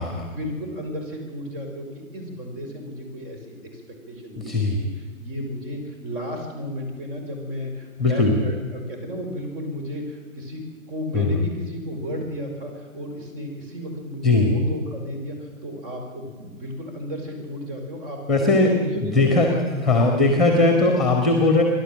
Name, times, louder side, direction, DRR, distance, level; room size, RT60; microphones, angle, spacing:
voice 1, 0.0-1.9 2.1-3.5 4.1-19.7 20.0-20.4, equal, 40° right, 3 dB, 5.7 m, -33 dB
voice 2, 4.4-4.8 8.0-8.4 11.1-11.3 14.2-14.5 18.3-18.7 19.1-19.5 19.8-21.6, left 3 dB, ahead, 3 dB, 1.8 m, -18 dB
28.0 x 12.0 x 7.6 m, 1.5 s
figure-of-eight pair, 130°, 42 cm